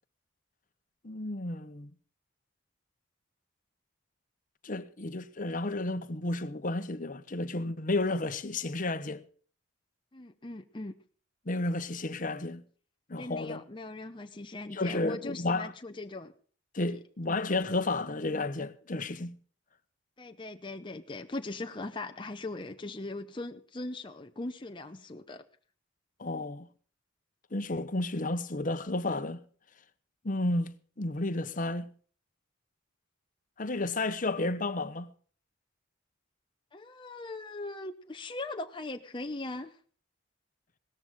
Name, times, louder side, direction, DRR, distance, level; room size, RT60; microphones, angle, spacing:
voice 1, 1.0-1.9 4.6-9.2 11.4-12.6 13.1-13.6 14.7-15.7 16.7-19.4 26.2-26.7 27.5-29.4 30.2-31.9 33.6-35.1, left 2 dB, 40° left, 1.1 m, -32 dB
voice 2, 10.1-10.9 13.2-16.3 20.2-25.4 36.7-39.8, left 2 dB, 25° left, 0.8 m, -40 dB
17.5 x 14.0 x 3.7 m
head